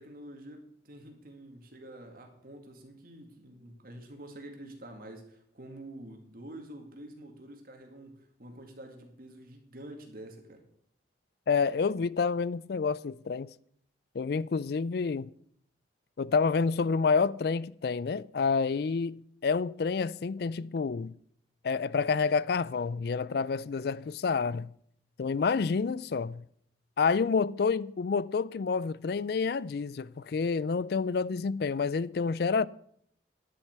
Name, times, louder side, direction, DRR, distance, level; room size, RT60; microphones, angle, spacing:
voice 1, 0.0-10.6, right 1 dB, 50° right, 2.1 m, -47 dB
voice 2, 11.5-13.5 14.1-15.3 16.2-21.1 21.6-24.7 25.2-26.4 27.0-32.7, left 5 dB, 55° left, 0.4 m, -28 dB
10.5 x 7.6 x 6.6 m
head